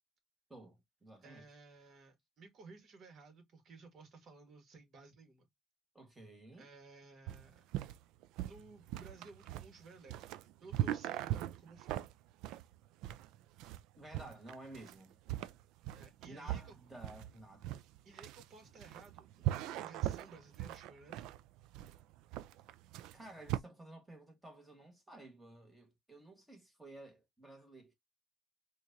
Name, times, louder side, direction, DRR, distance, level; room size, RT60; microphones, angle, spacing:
voice 1, 0.5-1.5 5.9-6.7 14.0-15.2 16.2-17.9 23.1-27.9, right 1 dB, 10° right, 1.4 m, -53 dB
voice 2, 1.2-5.5 6.6-7.6 8.4-12.1 15.9-16.7 18.0-21.3, right 3 dB, 45° right, 1.6 m, -56 dB
sound 1, 7.3-23.6, right 13 dB, 80° right, 0.3 m, -40 dB
4.4 x 2.5 x 2.7 m
cardioid pair, 150°, 0 cm